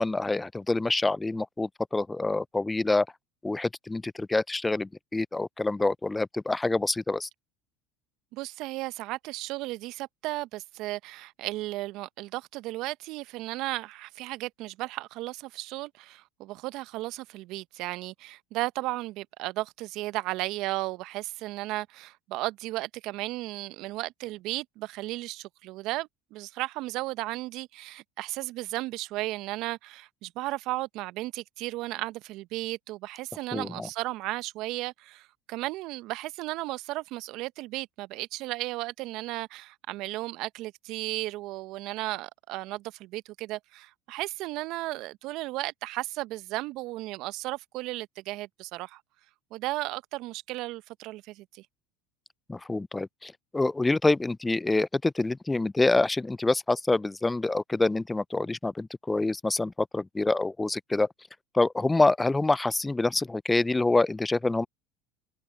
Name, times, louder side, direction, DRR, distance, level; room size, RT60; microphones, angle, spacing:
voice 1, 0.0-3.1 3.4-7.3 33.5-33.9 52.5-61.1 61.5-64.7, left 2 dB, 15° left, 0.5 m, -26 dB
voice 2, 8.3-49.0 49.5-51.6, right 19 dB, 60° right, 1.1 m, -35 dB
hypercardioid pair, 75°, 0 cm